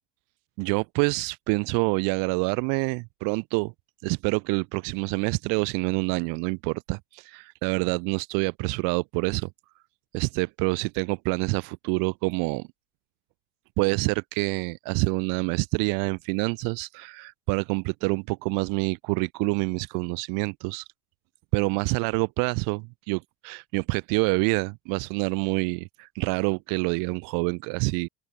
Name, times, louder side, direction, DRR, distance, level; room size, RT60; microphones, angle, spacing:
voice 1, 0.6-3.7 4.0-9.5 10.1-12.7 13.8-20.8 21.5-28.1, right 32 dB, 65° right, 0.6 m, -27 dB
open air
hypercardioid pair, 80°, 36 cm